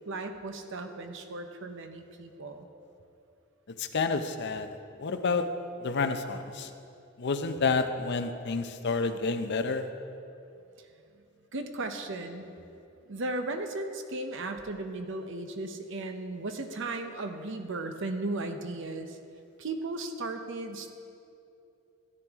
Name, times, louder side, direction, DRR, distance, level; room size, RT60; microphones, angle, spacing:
voice 1, 0.1-2.7 11.5-12.5 13.1-19.2 19.6-20.9, right 2 dB, 65° right, 6 dB, 0.8 m, -36 dB
voice 2, 3.8-4.7 5.0-5.5 5.8-6.7 7.2-9.9, left 4 dB, 55° left, 8 dB, 0.6 m, -29 dB
13.5 x 9.8 x 3.6 m, 2.7 s
head